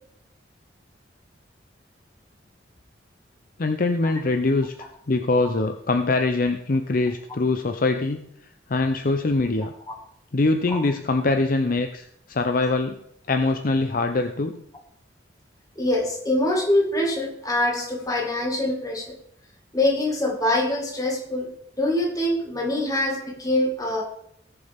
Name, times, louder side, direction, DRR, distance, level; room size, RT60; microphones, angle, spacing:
voice 1, 3.6-8.3 8.7-9.7 10.3-13.0 13.3-14.6, left 3 dB, 50° left, 6 dB, 0.6 m, -23 dB
voice 2, 15.8-19.2 19.7-21.5 21.8-24.0, left 1 dB, 20° left, 0 dB, 2.0 m, -24 dB
19.0 x 6.8 x 3.5 m, 0.72 s
head